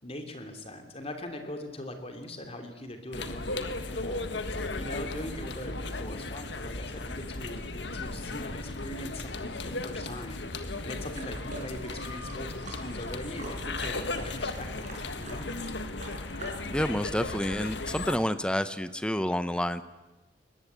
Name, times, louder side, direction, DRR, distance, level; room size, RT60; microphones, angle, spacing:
voice 1, 0.0-15.5, left 1 dB, 35° left, 5 dB, 3.0 m, -41 dB
sound 1, 3.1-18.2, left 2 dB, 80° left, 1.7 m, -36 dB
sound 2, 11.1-17.1, right 2 dB, 45° right, 6.1 m, -45 dB
voice 2, 16.7-19.8, equal, 5° left, 12 dB, 1.0 m, -29 dB
22.5 x 19.5 x 8.2 m, 1.1 s
head